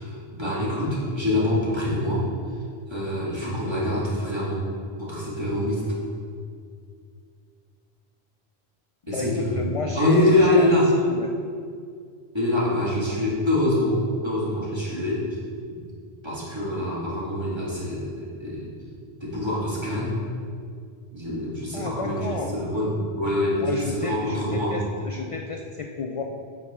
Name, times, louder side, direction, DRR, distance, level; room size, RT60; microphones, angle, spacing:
voice 1, 0.0-2.3 2.9-4.6 5.0-5.9 9.1-9.7 10.0-10.9 12.3-15.3 16.2-18.7 19.2-20.2 21.1-24.8, left 1 dB, 25° right, -7 dB, 2.0 m, -25 dB
voice 2, 9.1-10.7 11.1-11.3 21.7-22.6 23.6-26.2, left 4 dB, 50° left, 3 dB, 0.4 m, -31 dB
8.5 x 6.3 x 3.6 m, 2.2 s
omnidirectional pair, 1.1 m